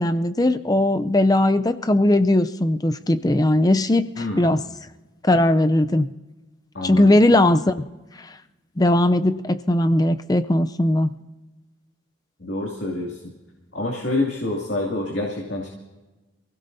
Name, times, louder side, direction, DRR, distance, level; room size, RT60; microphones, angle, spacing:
voice 1, 0.0-4.6 5.2-6.1 6.8-7.8 8.8-11.1, left 1 dB, 20° left, 11 dB, 0.5 m, -19 dB
voice 2, 4.2-4.5 6.7-7.2 12.4-13.2 13.7-15.7, left 2 dB, 65° left, -2 dB, 2.4 m, -27 dB
28.0 x 16.5 x 2.7 m, 1.1 s
head